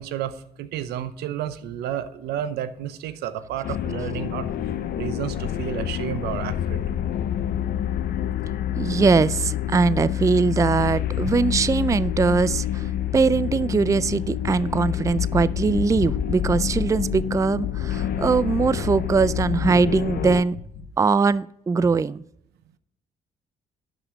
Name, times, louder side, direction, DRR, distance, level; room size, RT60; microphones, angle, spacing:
voice 1, 0.0-4.5 5.0-6.8, right 10 dB, 85° right, 12 dB, 0.8 m, -31 dB
sound 1, 3.6-20.4, left 10 dB, 70° left, 0.6 m, -27 dB
voice 2, 8.8-20.6 21.0-22.2, right 4 dB, 20° right, 18 dB, 0.3 m, -21 dB
sound 2, 13.0-15.4 15.7-16.1 16.4-17.5 17.8-18.8 19.1-20.9, left 5 dB, 85° left, 1.8 m, -41 dB
12.0 x 5.1 x 5.2 m, 0.76 s
supercardioid pair, 65°, 17 cm